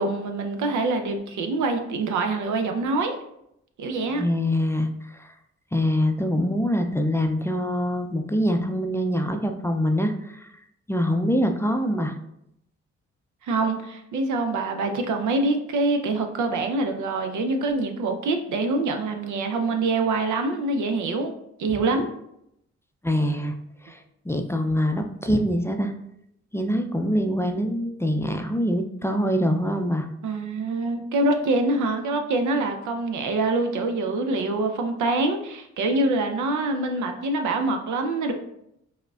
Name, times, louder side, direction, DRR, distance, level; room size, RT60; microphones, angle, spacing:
voice 1, 0.0-3.2 3.8-4.2 13.4-21.3 21.6-22.1 30.2-38.3, right 2 dB, 80° right, 5 dB, 0.6 m, -25 dB
voice 2, 4.1-5.3 5.7-10.5 10.9-12.1 23.0-23.6 23.8-25.9 26.5-30.1, equal, 10° left, 5 dB, 0.4 m, -24 dB
4.6 x 2.2 x 2.3 m, 0.78 s
supercardioid pair, 50°, 30 cm